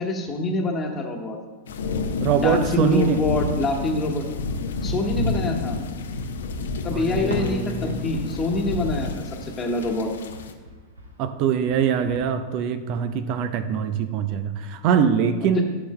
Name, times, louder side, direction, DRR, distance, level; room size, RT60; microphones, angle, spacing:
voice 1, 0.0-1.4 2.3-4.2 4.8-5.8 6.8-10.1 15.5-15.6, left 2 dB, 20° left, 2 dB, 1.4 m, -25 dB
sound 1, 1.7-10.5, left 3 dB, 65° left, 0.7 m, -30 dB
voice 2, 2.2-3.2 6.9-8.0 11.2-15.6, right 7 dB, 45° right, 10 dB, 0.6 m, -23 dB
Fireworks, 7.3-9.9 10.2-12.2, equal, 75° right, 1.3 m, -39 dB
15.0 x 6.8 x 2.2 m, 1.4 s
figure-of-eight pair, 90°, 0 cm